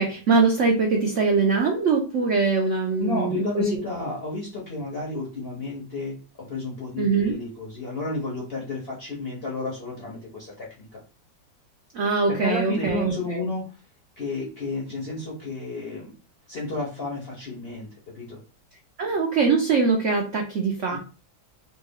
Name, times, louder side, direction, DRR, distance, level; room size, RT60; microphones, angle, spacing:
voice 1, 0.0-3.7 7.0-7.4 11.9-13.4 19.0-21.0, right 4 dB, 80° right, 1 dB, 0.6 m, -22 dB
voice 2, 3.0-11.0 12.3-13.8 14.2-16.1 16.5-17.9 18.1-18.4 20.9-21.0, left 3 dB, 50° left, -3 dB, 0.7 m, -31 dB
3.2 x 2.2 x 3.4 m, 0.34 s
omnidirectional pair, 2.0 m